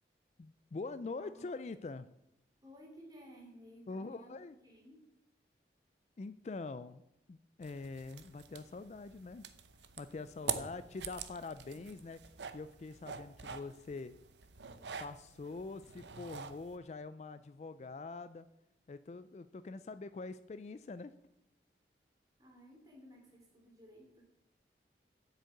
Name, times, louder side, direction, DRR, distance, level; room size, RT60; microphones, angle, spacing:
voice 1, 0.4-2.1 3.9-4.6 6.2-7.0 7.3-9.4 10.0-12.2 12.5-14.1 15.0-18.5 18.9-21.1, left 3 dB, 40° left, 13 dB, 0.3 m, -44 dB
voice 2, 1.2-1.5 2.6-5.1 10.4-10.7 22.4-24.2, equal, 20° right, -1 dB, 2.9 m, -56 dB
sound 1, 7.6-16.8, right 7 dB, 85° right, 0.8 m, -46 dB
8.1 x 6.5 x 8.3 m, 0.86 s
head